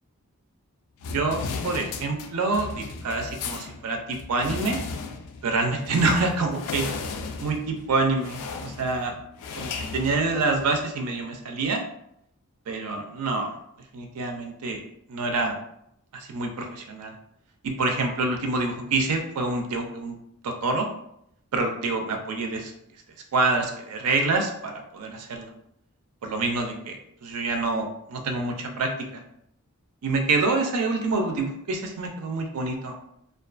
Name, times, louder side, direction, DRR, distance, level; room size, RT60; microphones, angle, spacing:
sound 1, 1.0-10.8, left 4 dB, 90° left, 0.3 m, -35 dB
voice 1, 1.1-4.8 5.4-6.9 7.4-9.1 9.6-11.8 12.7-13.5 13.9-14.8 15.1-15.6 16.1-17.1 17.6-20.1 20.4-20.9 21.5-22.7 23.3-25.5 26.2-27.0 27.2-29.2 30.0-33.0, right 3 dB, 85° right, 4 dB, 0.4 m, -26 dB
2.4 x 2.2 x 2.4 m, 0.75 s
head